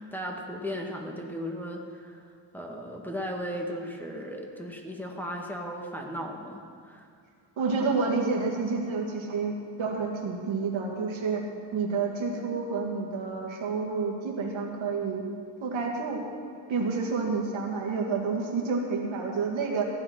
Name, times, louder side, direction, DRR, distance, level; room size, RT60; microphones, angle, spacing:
voice 1, 0.1-7.1, equal, 5° left, -1 dB, 1.7 m, -36 dB
voice 2, 7.6-11.4 11.7-15.2 15.6-16.2 16.7-19.8, right 4 dB, 80° right, 0 dB, 2.0 m, -29 dB
15.0 x 8.9 x 6.1 m, 2.2 s
cardioid pair, 95°, 46 cm